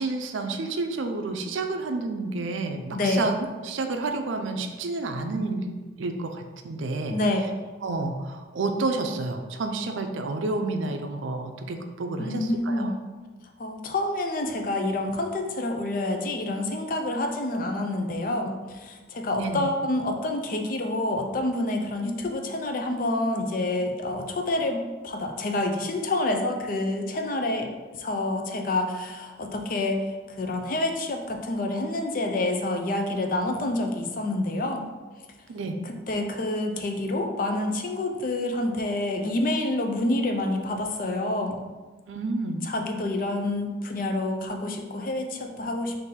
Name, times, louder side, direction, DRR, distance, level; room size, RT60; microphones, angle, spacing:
voice 1, 0.0-3.4 3.6-5.7 6.0-7.2 7.8-12.9 19.3-19.7 35.5-35.8 42.1-42.7, right 3 dB, 80° right, 6 dB, 0.4 m, -30 dB
voice 2, 2.9-3.3 7.1-7.5 12.2-13.0 13.6-34.9 35.8-41.6 42.6-46.0, left 2 dB, 45° left, 4 dB, 0.4 m, -28 dB
3.8 x 2.6 x 4.1 m, 1.3 s
head